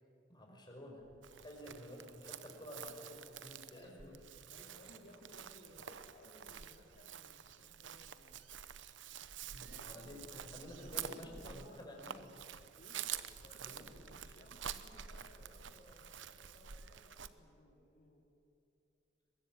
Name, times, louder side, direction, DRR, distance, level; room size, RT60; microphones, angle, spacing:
voice 1, 0.3-1.0 1.4-4.2 9.5-12.3 13.6-14.2, left 1 dB, 25° left, 0 dB, 5.2 m, -51 dB
Thump thud, 0.9-1.6 4.3-4.8, equal, 10° right, 7.2 m, -69 dB
Chirp tweet, 1.2-17.3, right 9 dB, 80° right, 1.0 m, -48 dB
voice 2, 1.4-1.9 3.7-4.0 4.5-8.4 9.7-10.5 10.8-11.8 12.8-13.1 13.4-18.2, left 1 dB, 50° left, -2 dB, 3.4 m, -60 dB
23.0 x 21.0 x 8.9 m, 2.7 s
head